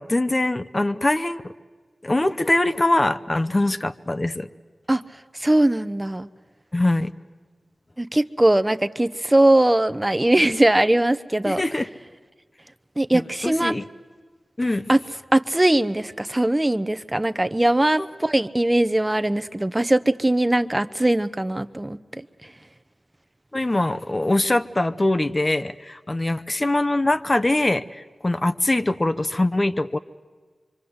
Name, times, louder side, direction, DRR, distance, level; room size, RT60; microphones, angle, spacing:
voice 1, 0.0-1.5 2.0-4.5 6.7-7.1 11.4-11.9 13.1-13.9 14.6-14.8 23.5-30.0, left 2 dB, 35° left, 10 dB, 0.7 m, -23 dB
voice 2, 5.4-6.3 8.0-11.6 13.0-13.7 14.9-15.0 15.3-22.0, right 1 dB, 20° right, 13 dB, 0.7 m, -20 dB
25.0 x 24.5 x 8.0 m, 1.5 s
cardioid pair, 40°, 0 cm